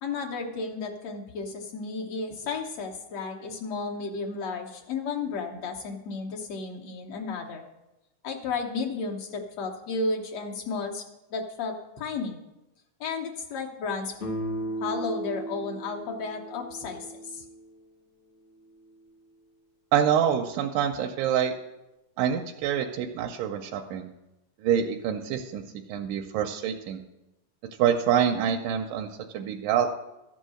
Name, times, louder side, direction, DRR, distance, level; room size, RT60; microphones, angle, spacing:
voice 1, 0.0-7.6 8.2-11.0 11.3-12.4 13.0-14.1 14.8-17.4, left 4 dB, 65° left, 0 dB, 1.8 m, -33 dB
sound 1, 14.2-17.8, right 1 dB, 45° left, 1.0 m, -36 dB
voice 2, 19.9-21.5 22.2-24.1 24.6-25.6 25.9-27.0 27.8-29.1 29.3-29.9, right 9 dB, 85° right, 3 dB, 2.2 m, -26 dB
13.0 x 5.5 x 6.3 m, 0.97 s
omnidirectional pair, 3.7 m